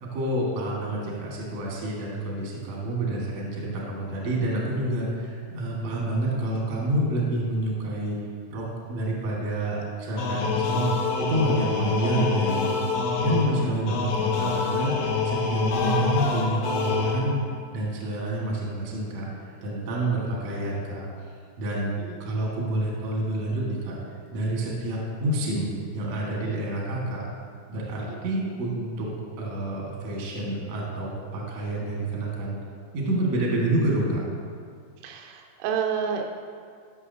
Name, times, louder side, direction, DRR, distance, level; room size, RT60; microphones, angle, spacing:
voice 1, 0.0-8.2 8.5-10.9 11.2-12.9 13.2-17.4 17.7-21.1 21.6-21.9 22.2-23.9 24.3-27.2 27.7-29.1 29.4-32.6 32.9-34.2, right 1 dB, 65° right, -4 dB, 1.7 m, -28 dB
sound 1, 10.2-17.6, left 5 dB, 90° left, 2.2 m, -26 dB
voice 2, 35.0-36.3, right 7 dB, 85° right, 2 dB, 3.0 m, -30 dB
13.0 x 6.0 x 2.7 m, 2.1 s
omnidirectional pair, 5.7 m